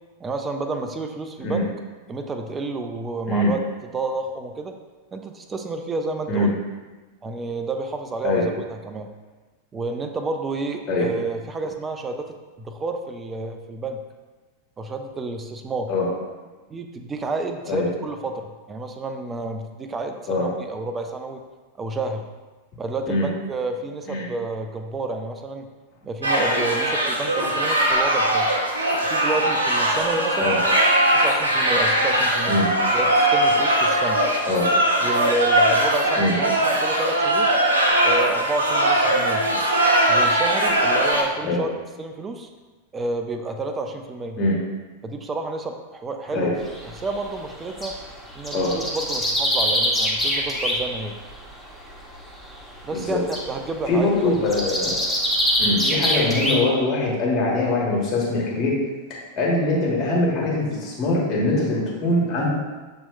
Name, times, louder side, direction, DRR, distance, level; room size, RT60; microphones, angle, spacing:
voice 1, 0.2-1.7 2.1-3.6 3.9-4.7 5.1-6.5 7.2-9.1 9.7-14.0 14.8-15.9 16.7-21.4 21.8-22.2 22.8-25.7 26.0-28.5 28.9-30.6 31.1-32.6 32.9-34.2 35.0-37.5 38.0-39.4 40.1-41.7 42.0-42.5 42.9-44.4 45.0-46.6 46.9-47.9 48.3-51.1 52.8-53.2 53.5-54.4, right 3 dB, 20° right, 5 dB, 0.4 m, -30 dB
sound 1, 26.2-41.2, right 1 dB, 75° right, 0.6 m, -20 dB
sound 2, 46.6-48.0 48.3-51.0 51.2-51.7 52.3-52.8 53.1-56.5, equal, 15° left, 0.8 m, -24 dB
voice 2, 53.9-55.0 55.6-58.7 59.3-62.5, left 2 dB, 35° left, -4 dB, 1.4 m, -22 dB
6.9 x 2.9 x 2.2 m, 1.3 s
figure-of-eight pair, 90°, 0 cm